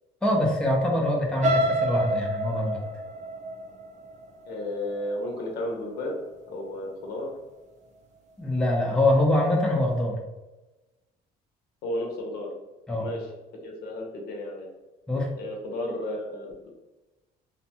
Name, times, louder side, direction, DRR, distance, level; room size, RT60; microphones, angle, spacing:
voice 1, 0.2-2.8 8.4-10.2 12.9-13.1 15.1-15.3, left 1 dB, 5° left, -1 dB, 0.4 m, -24 dB
sound 1, 1.4-5.4 5.9-6.2 6.5-6.6, right 1 dB, 45° right, 0.5 m, -28 dB
voice 2, 4.5-6.2 6.5-7.3 11.8-12.5 13.0-13.3 13.6-14.7 15.4-16.7, left 1 dB, 70° left, 0 dB, 0.7 m, -33 dB
2.6 x 2.1 x 2.7 m, 1.1 s
cardioid pair, 110°, 17 cm